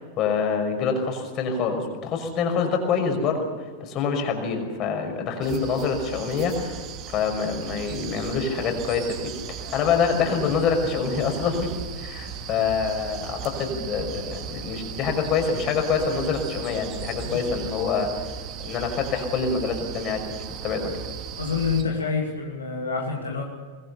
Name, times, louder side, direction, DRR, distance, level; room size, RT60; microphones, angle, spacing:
voice 1, 0.0-3.5 3.8-18.1 18.6-21.0, left 5 dB, 35° left, 4 dB, 5.8 m, -26 dB
sound 1, 5.4-21.8, right 8 dB, 35° right, 2.7 m, -37 dB
voice 2, 21.4-23.4, left 5 dB, 75° left, 0 dB, 2.9 m, -27 dB
24.5 x 21.0 x 6.9 m, 1.5 s
figure-of-eight pair, 90°, 0 cm